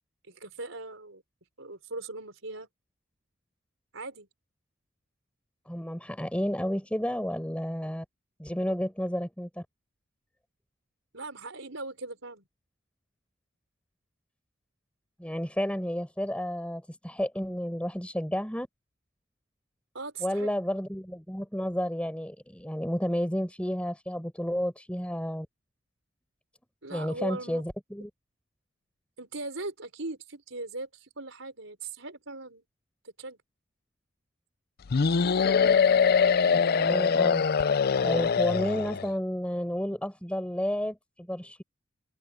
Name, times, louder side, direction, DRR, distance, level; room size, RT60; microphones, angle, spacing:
voice 1, 0.3-1.2 1.6-2.7 3.9-4.3 11.1-12.4 19.9-20.5 26.8-27.6 29.2-32.6 33.0-33.4, right 3 dB, 70° right, 5.9 m, -39 dB
voice 2, 5.7-8.0 8.4-9.6 15.2-18.7 20.2-25.5 26.9-28.1 36.4-37.5 38.0-41.6, equal, 5° left, 5.8 m, -31 dB
sound 1, 34.9-39.1, left 6 dB, 50° left, 0.5 m, -23 dB
head